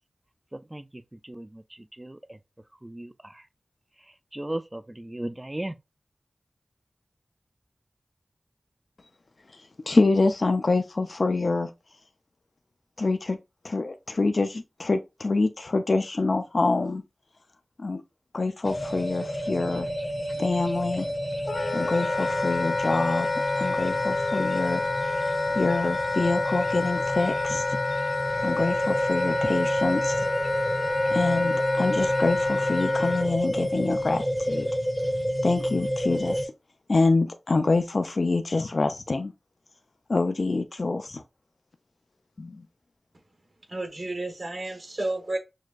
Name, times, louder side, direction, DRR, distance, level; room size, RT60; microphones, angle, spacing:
voice 1, 0.5-0.9 1.2-1.6 2.0-2.4 2.8-3.4 4.3-5.7, right 1 dB, 25° right, 0.3 m, -36 dB
voice 2, 9.5-11.7 13.0-13.4 13.6-17.0 17.8-18.0 18.3-19.9 20.4-21.1 21.7-23.3 23.6-24.8 25.6-27.8 28.4-30.3 31.1-34.7 35.4-36.5 36.9-39.3 40.1-41.2 42.4-42.6, left 3 dB, 65° left, 0.3 m, -26 dB
sound 1, 18.6-36.5, equal, ahead, 0.7 m, -29 dB
Wind instrument woodwind instrument, 21.5-33.3, left 3 dB, 90° left, 0.9 m, -29 dB
voice 3, 43.7-45.4, right 2 dB, 70° right, 1.3 m, -31 dB
6.3 x 2.4 x 2.4 m
wide cardioid pair, 65°, 0 cm